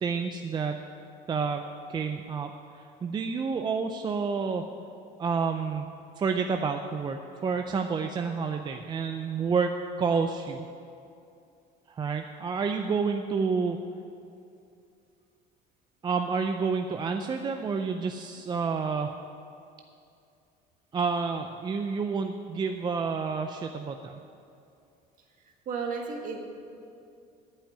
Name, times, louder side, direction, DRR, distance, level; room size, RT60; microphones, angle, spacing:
voice 1, 0.0-0.8 1.3-1.6 1.9-4.7 5.2-5.9 6.2-9.7 10.0-10.7 11.9-13.8 16.0-19.1 20.9-24.2, right 5 dB, 25° right, 5 dB, 0.4 m, -29 dB
voice 2, 25.7-26.4, right 5 dB, 50° right, 2 dB, 1.7 m, -33 dB
8.9 x 7.6 x 8.7 m, 2.6 s
cardioid pair, 135°, 18 cm